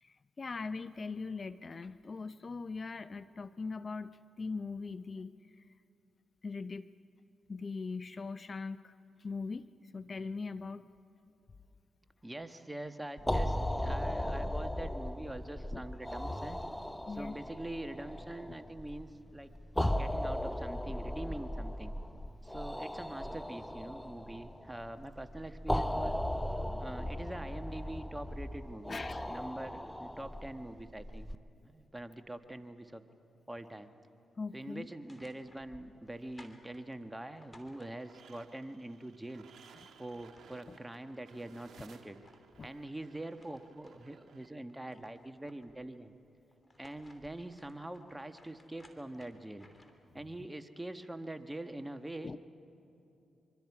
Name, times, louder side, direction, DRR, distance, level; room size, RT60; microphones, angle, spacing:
voice 1, 0.0-5.7 6.4-6.9 7.5-8.9 9.2-10.9 13.8-13.9 15.7-15.8 17.1-17.4 28.9-29.4 34.4-34.9 40.7-40.8 42.6-42.7 52.2-52.4, left 4 dB, 45° left, 14 dB, 0.5 m, -41 dB
voice 2, 12.2-16.6 17.1-19.5 19.9-21.9 22.4-26.2 26.7-29.0 29.3-31.3 31.6-33.0 33.5-33.9 34.5-39.5 40.0-42.2 42.6-46.1 46.8-49.7 50.1-52.3, right 1 dB, 15° right, 8 dB, 1.4 m, -44 dB
sound 1, 13.2-31.4, left 1 dB, 5° left, 0.7 m, -37 dB
sound 2, 34.8-38.4 39.8-39.9 40.2-41.0 41.5-44.2 44.6-45.9 46.5-50.1, left 1 dB, 25° left, 3.0 m, -62 dB
sound 3, 38.0-44.5, right 7 dB, 70° right, 1.4 m, -59 dB
25.5 x 24.0 x 4.8 m, 2.8 s
hypercardioid pair, 40°, 0 cm